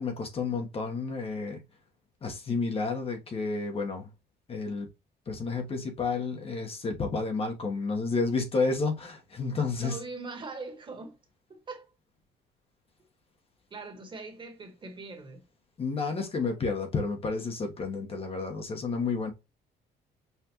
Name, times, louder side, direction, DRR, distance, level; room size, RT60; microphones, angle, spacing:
voice 1, 0.0-1.6 2.2-4.1 4.5-4.9 5.3-10.0 15.8-19.3, left 4 dB, 35° left, 1.2 m, -31 dB
voice 2, 9.8-11.2 11.5-11.9 13.7-15.4, right 3 dB, 30° right, 1.5 m, -41 dB
5.8 x 2.5 x 3.0 m
cardioid pair, 110°, 17 cm